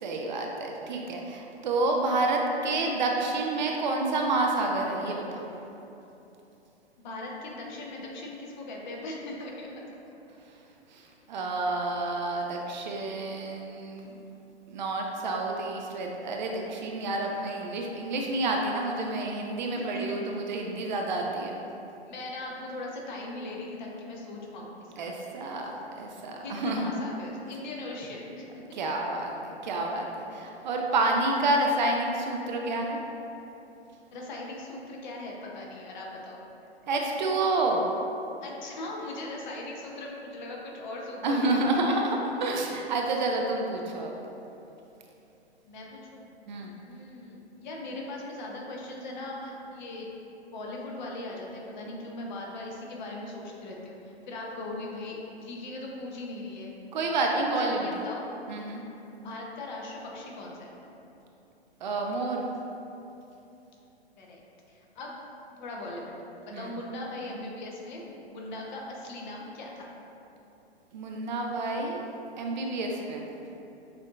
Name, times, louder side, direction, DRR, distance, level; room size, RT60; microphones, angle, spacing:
voice 1, 0.0-5.4 10.9-14.2 14.7-21.6 25.0-26.9 28.7-33.0 36.9-37.9 41.2-44.1 46.5-46.7 56.9-57.9 58.5-58.8 61.8-62.4 66.5-66.7 70.9-72.0 72.4-73.2, right 2 dB, 45° right, 1 dB, 0.4 m, -29 dB
voice 2, 7.0-9.7 19.7-20.3 22.0-25.6 26.4-28.5 34.1-36.5 38.4-41.8 45.6-46.3 46.9-50.1 50.5-56.7 57.3-58.3 59.2-60.7 64.2-64.4 64.7-65.2 65.6-66.2 66.4-69.9, left 2 dB, 45° left, -2 dB, 0.8 m, -39 dB
6.5 x 2.7 x 2.4 m, 2.9 s
figure-of-eight pair, 115°, 32 cm